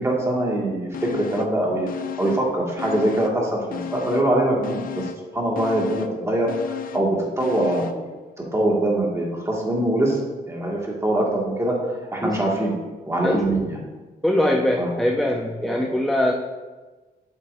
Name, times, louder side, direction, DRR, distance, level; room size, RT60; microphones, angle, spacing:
voice 1, 0.0-1.9 2.2-5.1 5.3-8.0 8.5-10.2 10.5-11.7 12.1-12.7 13.1-13.8 14.8-14.9 15.6-15.9, right 1 dB, 15° right, -2 dB, 1.8 m, -23 dB
sound 1, 0.9-1.6 1.9-3.4 3.7-8.1 8.4-8.5, left 9 dB, 60° left, 0.5 m, -34 dB
voice 2, 13.2-13.6 14.2-16.3, left 1 dB, ahead, 1 dB, 0.5 m, -22 dB
8.4 x 7.5 x 2.6 m, 1.3 s
cardioid pair, 115°, 16 cm